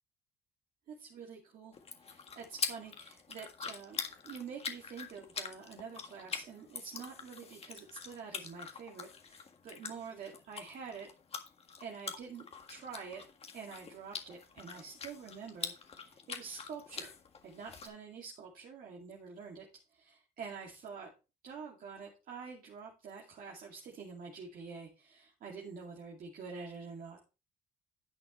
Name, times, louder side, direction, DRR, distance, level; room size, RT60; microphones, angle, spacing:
voice 1, 0.9-11.1 11.8-13.2 13.5-17.1 17.4-19.7 19.9-21.1 21.4-27.2, right 5 dB, 55° right, -1 dB, 2.4 m, -47 dB
sound 1, 1.7-17.9, left 5 dB, 35° left, 1.8 m, -44 dB
10.5 x 8.4 x 3.1 m, 0.29 s
cardioid pair, 110°, 17 cm